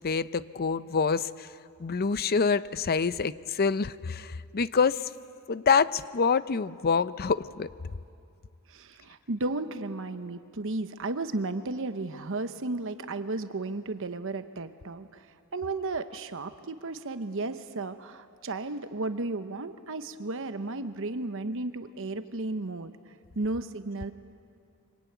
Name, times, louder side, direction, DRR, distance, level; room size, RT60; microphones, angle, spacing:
voice 1, 0.0-1.5 1.8-5.1 5.5-7.7, left 5 dB, 45° left, 15 dB, 0.6 m, -26 dB
voice 2, 8.7-15.3 15.5-22.9 23.4-24.1, right 2 dB, 60° right, 9 dB, 1.0 m, -34 dB
25.0 x 24.5 x 9.3 m, 2.5 s
head